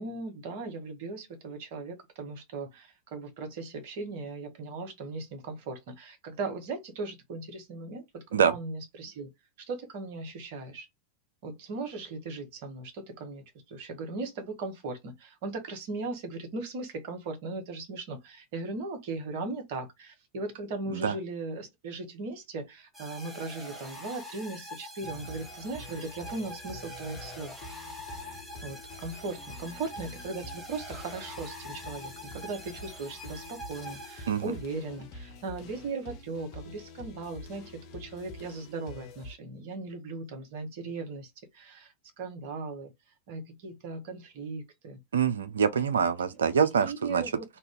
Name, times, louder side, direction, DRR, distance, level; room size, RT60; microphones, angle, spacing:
voice 1, 0.0-9.3 9.6-10.9 11.4-27.5 28.6-42.9 43.3-45.0 45.7-45.8 46.7-47.4, right 3 dB, 50° right, 1.0 m, -38 dB
sound 1, 22.9-34.8, equal, 5° right, 1.3 m, -45 dB
sound 2, 25.0-39.3, left 2 dB, 40° left, 0.9 m, -47 dB
voice 2, 45.1-47.2, right 7 dB, 65° right, 0.5 m, -25 dB
2.7 x 2.4 x 3.6 m
figure-of-eight pair, 90°, 0 cm